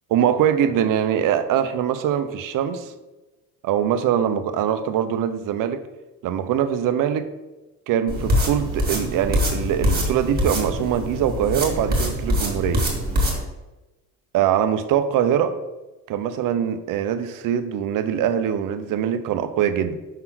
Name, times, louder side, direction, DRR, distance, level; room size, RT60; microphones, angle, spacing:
voice 1, 0.1-2.9 3.6-5.8 6.2-7.3 7.9-12.9 14.3-15.6 16.1-20.0, right 9 dB, 60° right, 10 dB, 0.7 m, -22 dB
sound 1, 8.1-13.4, equal, 25° right, 2.0 m, -24 dB
5.6 x 3.8 x 6.0 m, 1.1 s
cardioid pair, 135°, 37 cm